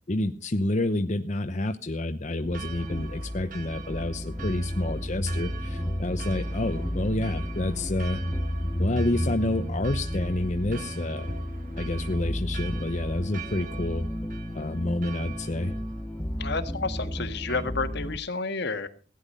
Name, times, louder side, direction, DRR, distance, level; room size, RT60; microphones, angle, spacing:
voice 1, 0.1-8.2 8.8-11.3 11.8-14.1 14.5-15.7, left 1 dB, 40° left, 7 dB, 0.9 m, -29 dB
sound 1, 2.4-18.2, equal, 10° left, 0.7 m, -32 dB
Church bell, 2.5-17.6, right 6 dB, 50° right, 1.9 m, -46 dB
voice 2, 16.4-18.9, left 3 dB, 65° left, 9 dB, 1.7 m, -30 dB
17.0 x 10.5 x 5.4 m, 0.38 s
head